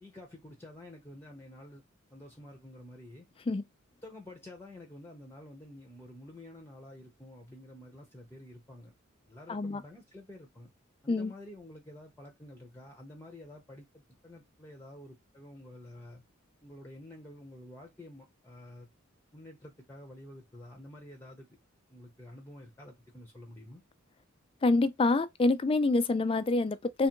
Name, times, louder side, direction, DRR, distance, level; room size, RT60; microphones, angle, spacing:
voice 1, 0.0-1.8 2.1-3.3 4.0-8.9 9.3-10.7 11.0-16.2 16.6-18.9 19.3-21.5 21.9-23.8, left 1 dB, 10° left, 0.7 m, -49 dB
voice 2, 9.5-9.8 11.1-11.3 24.6-27.1, left 3 dB, 25° left, 0.4 m, -26 dB
3.4 x 2.5 x 4.4 m
head